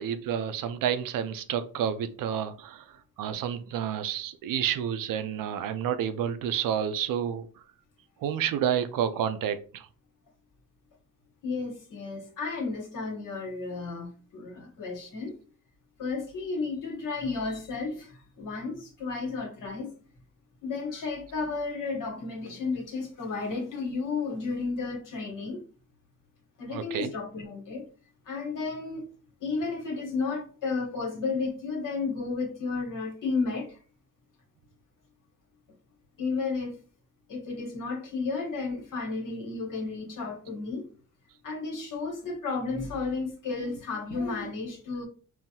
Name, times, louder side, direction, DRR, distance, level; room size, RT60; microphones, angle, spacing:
voice 1, 0.0-7.5 8.2-9.9 26.7-27.1, right 9 dB, 80° right, 0.5 m, -30 dB
voice 2, 11.4-15.3 16.0-18.1 18.4-19.9 20.6-25.6 26.6-27.8 28.3-29.0 29.4-33.7 36.2-36.7 37.3-40.8 41.4-45.1, left 4 dB, 70° left, 1.2 m, -32 dB
3.7 x 2.1 x 2.8 m
cardioid pair, 85°, 33 cm